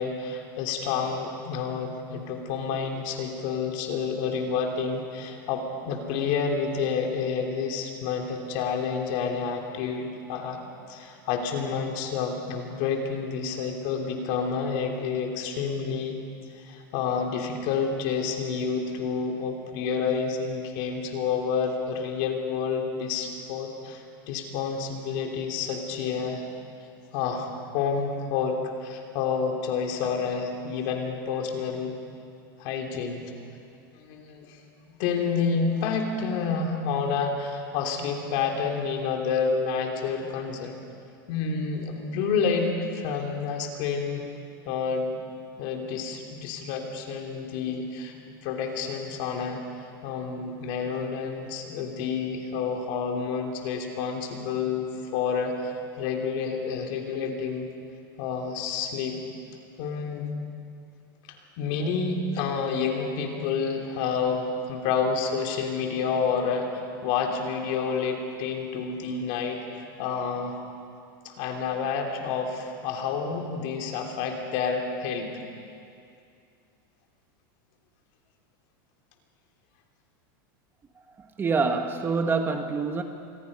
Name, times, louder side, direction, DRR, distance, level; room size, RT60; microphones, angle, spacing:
voice 1, 0.0-10.6 10.9-16.2 16.6-26.4 27.1-32.0 32.6-33.2 33.9-34.6 34.9-40.8 41.3-44.3 44.7-45.2 45.6-48.1 48.4-49.6 50.0-57.7 58.2-59.2 59.8-60.3 61.6-70.6 71.2-75.3, left 5 dB, 55° left, 2 dB, 3.4 m, -29 dB
voice 2, 81.2-83.0, right 4 dB, 20° right, 6 dB, 1.3 m, -26 dB
27.5 x 21.0 x 5.5 m, 2.5 s
supercardioid pair, 140°, 12 cm